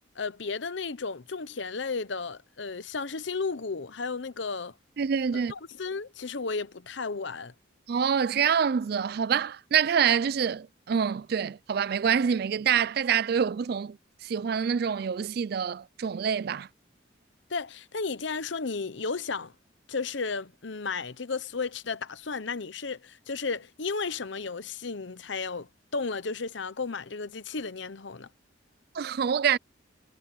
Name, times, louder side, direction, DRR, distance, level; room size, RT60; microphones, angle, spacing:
voice 1, 0.2-4.7 5.5-7.5 17.5-19.5 19.9-28.3, left 4 dB, 70° left, 0.9 m, -33 dB
voice 2, 5.0-5.5 7.9-14.0 14.2-16.7 28.9-29.6, right 7 dB, 50° right, 0.3 m, -26 dB
head